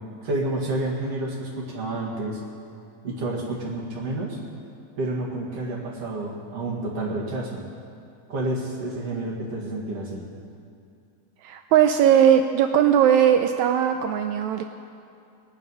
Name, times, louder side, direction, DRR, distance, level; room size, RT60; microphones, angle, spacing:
voice 1, 0.2-2.4 3.0-4.4 5.0-7.6 8.3-10.2, right 2 dB, 50° right, -3 dB, 2.8 m, -29 dB
voice 2, 11.4-14.6, right 9 dB, 85° right, 7 dB, 1.6 m, -19 dB
21.0 x 9.1 x 5.6 m, 2.5 s
omnidirectional pair, 3.9 m